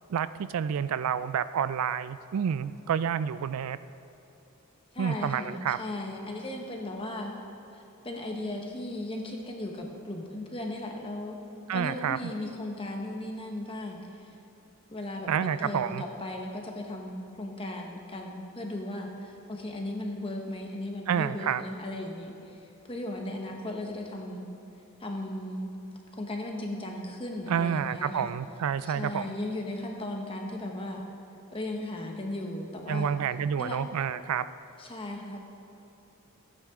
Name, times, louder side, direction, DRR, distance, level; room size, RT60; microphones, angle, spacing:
voice 1, 0.1-3.8 5.0-5.8 11.7-12.2 15.3-16.0 21.1-21.6 27.5-29.3 32.9-34.5, right 8 dB, 75° right, 14 dB, 0.3 m, -29 dB
voice 2, 4.9-7.3 7.7-11.4 11.7-14.3 14.9-22.6 22.9-24.5 25.0-25.7 26.1-28.3 28.9-31.0 31.5-33.1 33.6-33.8 34.8-35.4, left 1 dB, 25° left, 1 dB, 1.2 m, -36 dB
15.5 x 9.0 x 3.7 m, 2.9 s
head